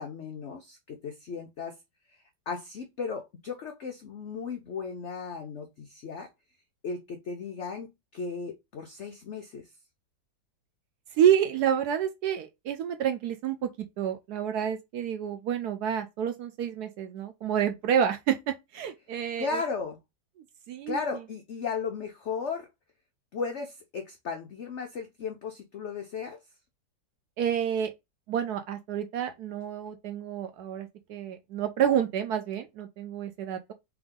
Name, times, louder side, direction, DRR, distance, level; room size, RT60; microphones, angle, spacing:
voice 1, 0.0-1.8 2.1-6.3 6.8-9.6 19.4-20.0 20.9-22.7 23.3-26.4, left 5 dB, 85° left, 0.6 m, -35 dB
voice 2, 11.2-13.7 14.0-19.6 20.7-21.0 27.4-27.9 28.3-33.7, right 9 dB, 70° right, 1.0 m, -28 dB
3.5 x 3.5 x 3.6 m
omnidirectional pair, 2.0 m